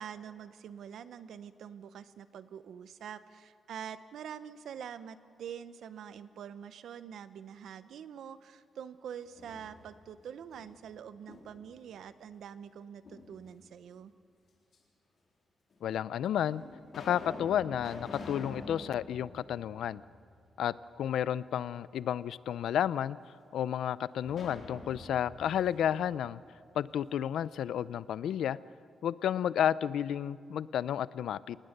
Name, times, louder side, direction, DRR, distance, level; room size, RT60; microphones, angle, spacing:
voice 1, 0.0-14.1, right 8 dB, 70° right, 13 dB, 0.8 m, -45 dB
sound 1, 9.1-10.1 10.5-11.8 13.0-13.8 14.7-14.8 15.7-15.8 16.4-20.5 20.8-20.9 24.2-27.0, left 3 dB, 45° left, 3.9 m, -47 dB
voice 2, 15.8-16.6 17.1-20.0 20.6-23.2 23.5-26.4 26.8-28.6 29.0-31.6, left 10 dB, 90° left, 18 dB, 0.5 m, -31 dB
26.5 x 19.0 x 6.6 m, 2.3 s
wide cardioid pair, 180°, 0 cm